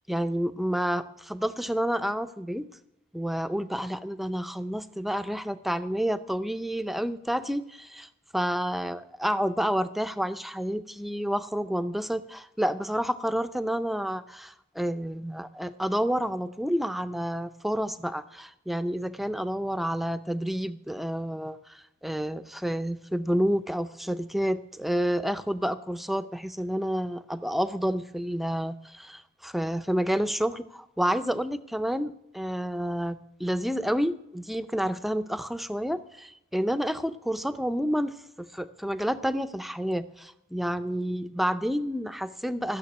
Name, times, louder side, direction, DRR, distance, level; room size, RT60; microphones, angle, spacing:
voice 1, 0.1-2.7 3.1-42.8, equal, ahead, 11 dB, 0.5 m, -29 dB
14.5 x 6.9 x 9.3 m, 0.82 s
head